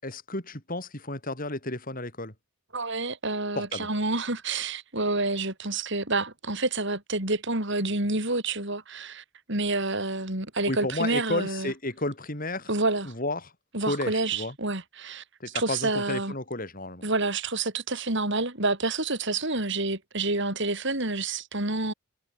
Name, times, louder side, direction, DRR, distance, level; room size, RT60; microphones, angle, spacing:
voice 1, 0.0-2.3 3.6-3.9 10.7-12.7 13.1-13.5 13.9-14.5 15.4-17.1, left 2 dB, 40° left, 7.5 m, -32 dB
voice 2, 2.7-11.7 12.7-13.1 13.7-16.3 17.0-21.9, right 2 dB, 55° right, 6.7 m, -28 dB
head